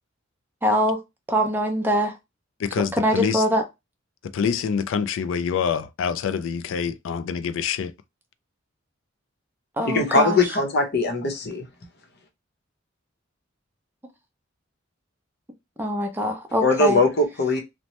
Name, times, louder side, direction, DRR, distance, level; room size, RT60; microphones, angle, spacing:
voice 1, 0.6-1.0 1.3-2.1 2.8-3.6 9.8-10.4 15.8-17.0, equal, 10° right, 0.5 m, -23 dB
voice 2, 2.6-3.4 4.3-7.9, left 6 dB, 70° left, 0.3 m, -26 dB
voice 3, 9.8-11.7 16.6-17.6, left 3 dB, 55° left, 0.8 m, -21 dB
2.8 x 2.1 x 3.0 m
head